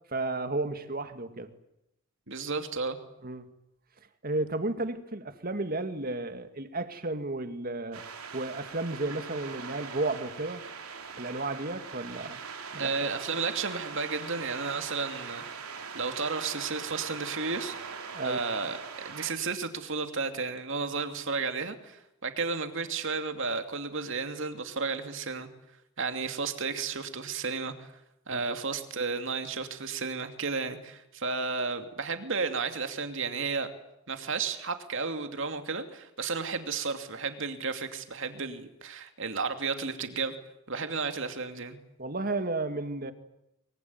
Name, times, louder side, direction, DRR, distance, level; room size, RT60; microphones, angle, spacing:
voice 1, 0.1-1.5 3.2-3.5 4.2-8.0 8.3-10.6 11.2-12.4 12.7-12.9 18.1-18.4 28.3-28.5 42.0-43.1, right 2 dB, 40° right, 2.0 m, -33 dB
voice 2, 2.3-3.0 12.8-15.4 15.9-17.7 18.2-18.8 19.0-25.5 26.0-27.9 28.3-33.7 34.1-40.3 40.7-41.8, right 4 dB, 60° right, 2.6 m, -33 dB
sound 1, 7.9-19.3, right 5 dB, 85° right, 3.7 m, -41 dB
23.5 x 23.5 x 9.6 m
head